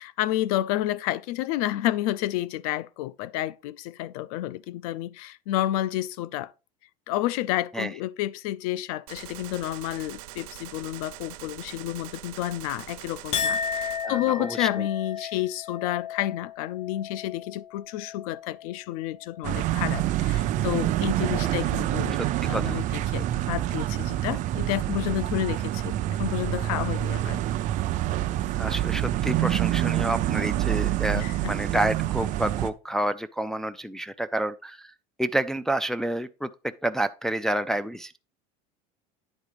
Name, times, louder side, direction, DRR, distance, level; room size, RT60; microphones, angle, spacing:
voice 1, 0.0-6.5 7.1-22.2 22.5-27.4 31.1-31.5, left 14 dB, 80° left, 0.5 m, -30 dB
Gunshot gunfire, 9.1-14.1, right 15 dB, 80° right, 0.8 m, -43 dB
Chink clink, 13.3-19.9 20.3-20.8, left 6 dB, 35° left, 0.6 m, -35 dB
voice 2, 14.0-14.9 21.4-22.8 28.6-34.9 35.2-38.2, right 1 dB, 5° left, 0.3 m, -29 dB
sound 1, 19.4-32.7, right 14 dB, 45° right, 0.6 m, -27 dB
9.8 x 3.9 x 4.9 m
cardioid pair, 140°, 18 cm